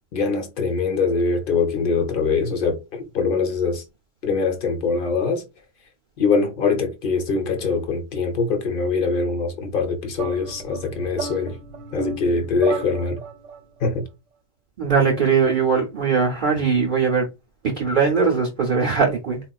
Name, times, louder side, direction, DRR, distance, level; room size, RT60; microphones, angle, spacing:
voice 1, 0.1-3.8 4.2-5.4 6.2-11.6 11.9-13.2 13.8-14.0, left 4 dB, 50° left, 0.7 m, -23 dB
sound 1, 10.1-13.6, right 3 dB, 75° right, 1.0 m, -32 dB
voice 2, 14.8-17.3 17.6-19.4, right 5 dB, 50° right, 0.7 m, -20 dB
3.8 x 2.3 x 2.2 m
omnidirectional pair, 1.3 m